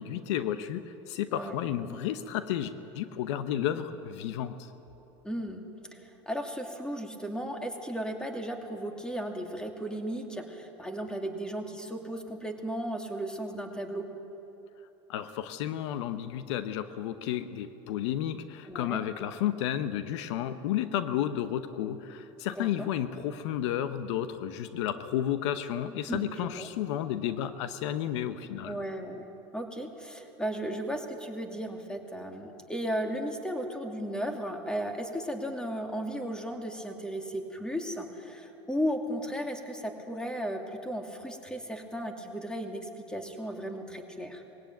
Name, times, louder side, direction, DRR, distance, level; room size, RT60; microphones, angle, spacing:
voice 1, 0.0-4.7 15.1-28.8, left 11 dB, 80° left, 11 dB, 1.0 m, -32 dB
voice 2, 5.2-5.6 5.9-14.1 18.7-19.0 22.6-22.9 26.1-26.7 28.6-29.3 29.5-44.4, equal, 5° left, 3 dB, 2.6 m, -35 dB
21.0 x 16.5 x 9.2 m, 3.0 s
supercardioid pair, 105°, 15 cm